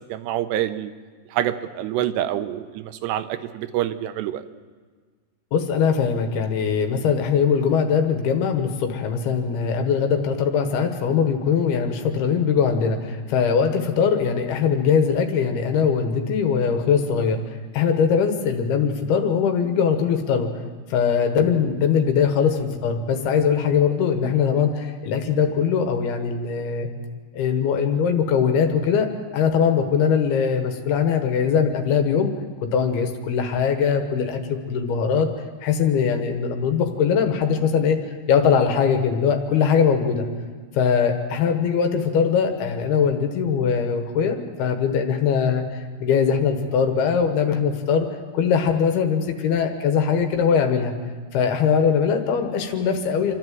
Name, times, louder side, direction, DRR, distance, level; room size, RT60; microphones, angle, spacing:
voice 1, 0.1-0.9 1.3-4.4, right 12 dB, 90° right, 10 dB, 3.0 m, -26 dB
voice 2, 5.5-17.4 17.7-20.5 20.9-26.9 27.3-32.3 32.6-35.3 35.6-38.0 38.3-40.2 40.7-48.1 48.3-50.9 51.3-53.3, left 6 dB, 75° left, 6 dB, 3.3 m, -21 dB
28.0 x 12.0 x 7.7 m, 1.5 s
omnidirectional pair, 4.8 m